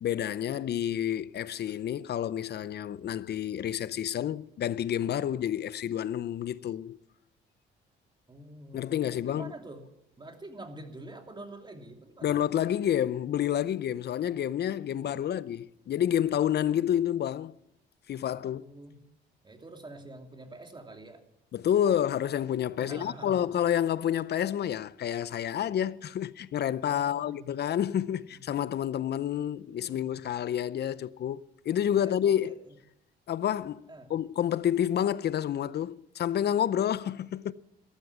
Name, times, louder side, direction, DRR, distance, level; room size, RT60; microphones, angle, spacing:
voice 1, 0.0-7.0 8.7-9.5 12.2-17.6 18.1-18.6 21.5-32.6 33.3-37.5, left 10 dB, 55° left, 0.6 m, -29 dB
voice 2, 8.3-9.8 10.2-12.3 15.1-15.2 18.3-19.0 19.4-21.2 22.8-23.6 26.9-27.5 28.1-28.4 29.7-30.2 32.0-32.8 33.9-34.1, right 1 dB, 25° right, 2.8 m, -46 dB
14.0 x 13.0 x 7.2 m
cardioid pair, 90°, 20 cm